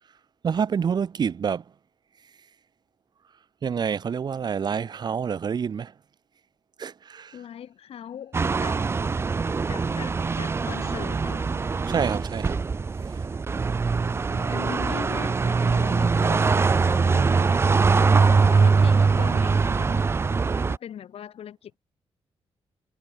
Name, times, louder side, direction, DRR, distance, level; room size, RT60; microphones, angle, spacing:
voice 1, 0.4-1.6 3.6-5.9 6.8-7.4 11.9-12.6 13.1-13.2, right 7 dB, 45° right, 0.9 m, -27 dB
voice 2, 7.3-8.9 9.6-11.6 14.3-20.4 20.7-21.8, left 9 dB, 70° left, 6.2 m, -40 dB
sound 1, 8.3-20.8, right 4 dB, 25° right, 0.4 m, -22 dB
wide cardioid pair, 140°, 10 cm